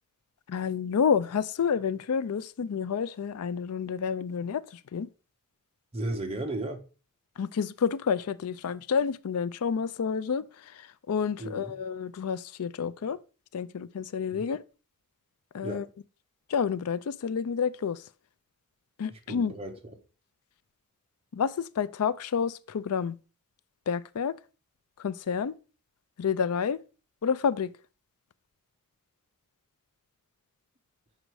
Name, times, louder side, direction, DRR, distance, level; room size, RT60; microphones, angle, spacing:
voice 1, 0.5-4.6 4.9-5.1 7.4-10.4 11.1-13.2 13.5-14.6 15.5-15.8 16.5-18.0 19.0-19.5 21.3-23.2 23.9-24.3 25.0-25.5 26.2-26.8 27.2-27.7, left 6 dB, 85° left, 0.4 m, -29 dB
voice 2, 5.9-6.8 11.4-11.7 14.3-14.4 15.6-15.8 19.1-19.9, right 1 dB, 25° right, 1.2 m, -35 dB
6.5 x 5.1 x 4.7 m
head